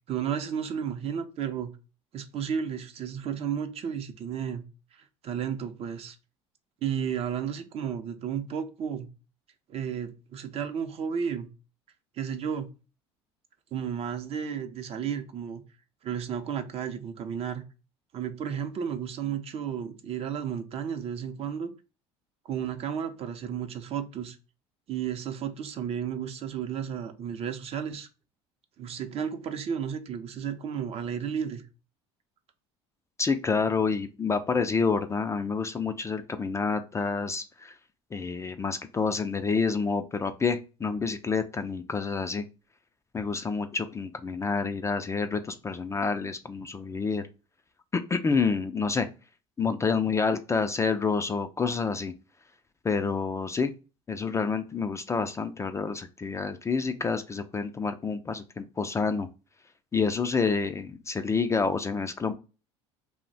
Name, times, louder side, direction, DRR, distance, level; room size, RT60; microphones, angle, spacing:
voice 1, 0.1-1.7 2.1-4.6 4.9-6.2 6.8-9.1 9.7-11.5 12.2-12.7 13.7-15.6 16.0-17.6 18.1-21.7 22.4-24.4 24.9-28.1 28.8-31.6, right 8 dB, 45° right, 0.6 m, -33 dB
voice 2, 33.2-37.8 38.1-42.4 43.1-47.2 47.9-49.1 49.6-52.1 52.8-53.7 54.1-59.3 59.9-62.3, left 5 dB, 20° left, 0.3 m, -28 dB
2.7 x 2.1 x 3.9 m
supercardioid pair, 85°, 14 cm